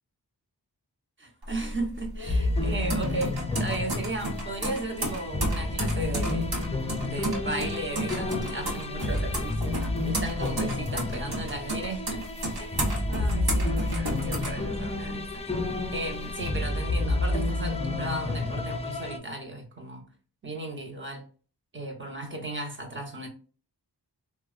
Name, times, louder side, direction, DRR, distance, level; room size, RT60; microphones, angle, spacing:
voice 1, 1.2-6.5 7.0-12.3 12.6-15.4 15.9-20.1 20.4-21.3 21.7-23.3, right 2 dB, 30° right, 0.9 m, -35 dB
sound 1, 1.4-15.2 15.6-16.5, right 1 dB, 60° right, 1.0 m, -33 dB
sound 2, 2.3-19.2, left 2 dB, 15° left, 0.4 m, -30 dB
3.3 x 2.1 x 2.4 m
wide cardioid pair, 50°, 42 cm